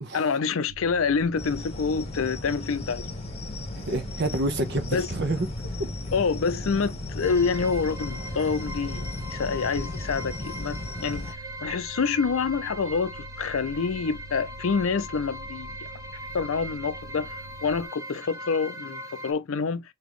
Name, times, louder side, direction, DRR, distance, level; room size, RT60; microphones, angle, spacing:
voice 1, 0.1-3.1 4.9-5.1 6.1-11.3 11.6-15.8 16.3-19.8, left 5 dB, 70° left, 0.5 m, -27 dB
sound 1, 0.7-17.9, right 1 dB, 75° right, 0.6 m, -45 dB
sound 2, 1.4-11.3, left 2 dB, 30° left, 1.1 m, -35 dB
voice 2, 3.7-5.5 5.8-5.9, right 2 dB, 55° right, 0.9 m, -28 dB
sound 3, 7.2-19.3, equal, 15° right, 0.6 m, -40 dB
4.0 x 2.8 x 3.0 m
head